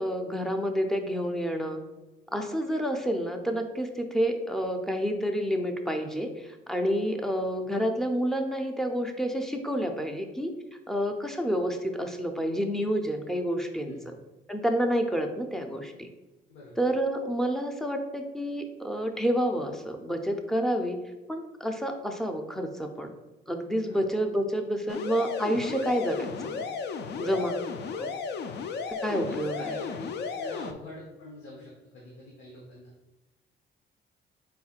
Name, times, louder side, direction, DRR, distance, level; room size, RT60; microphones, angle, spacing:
voice 1, 0.0-1.8 2.3-10.5 10.9-14.1 14.5-16.1 16.8-21.0 21.3-23.1 23.5-26.7 27.2-27.5 27.9-28.1 28.9-29.8, equal, ahead, 4 dB, 0.5 m, -29 dB
sound 1, 24.9-30.7, left 5 dB, 60° left, 0.4 m, -34 dB
voice 2, 29.0-32.9, left 2 dB, 90° left, -4 dB, 0.9 m, -45 dB
4.3 x 4.1 x 2.4 m, 1.1 s
cardioid pair, 90°, 20 cm